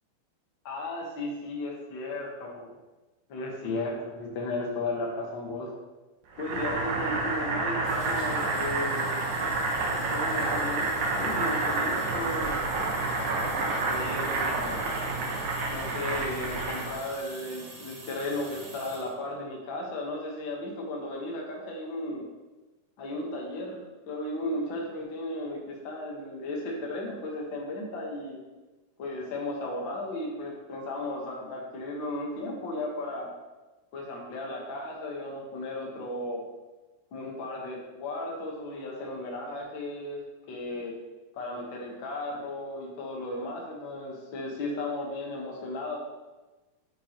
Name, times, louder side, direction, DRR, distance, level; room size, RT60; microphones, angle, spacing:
voice 1, 0.6-2.7 3.3-5.7 6.4-9.1 10.1-10.8 11.1-12.5 13.9-14.8 15.7-22.2 23.0-28.4 29.0-33.3 33.9-36.4 37.1-40.2 40.5-41.0 41.3-46.0, left 2 dB, 80° left, -2 dB, 1.0 m, -35 dB
Boiling, 6.4-17.0, right 3 dB, 65° right, 2.3 m, -29 dB
sound 1, 7.8-19.1, right 2 dB, 80° right, 4.4 m, -45 dB
9.9 x 5.0 x 2.9 m, 1.2 s
omnidirectional pair, 4.1 m